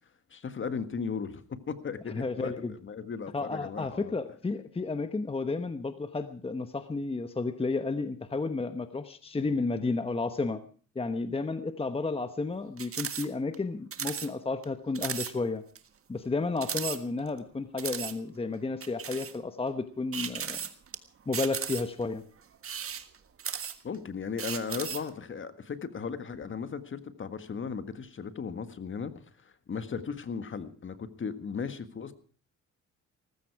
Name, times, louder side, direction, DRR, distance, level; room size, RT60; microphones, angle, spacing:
voice 1, 0.3-4.1 23.8-29.1 29.4-32.1, left 6 dB, 40° left, 11 dB, 1.7 m, -36 dB
voice 2, 2.1-2.7 3.3-10.6 10.9-15.6 16.1-20.6 21.3-22.2, left 3 dB, 20° left, 10 dB, 1.1 m, -32 dB
sound 1, 12.8-13.3 13.5-13.6 13.9-14.3 14.6-14.7 14.9-15.3 15.8-15.9 16.6-17.4 17.8-18.1 18.8-19.4 20.1-21.0 21.3-22.0 22.5-24.0 24.4-25.1, right 8 dB, 45° right, 1.6 m, -35 dB
18.0 x 15.0 x 4.7 m, 0.42 s
cardioid pair, 90°, 30 cm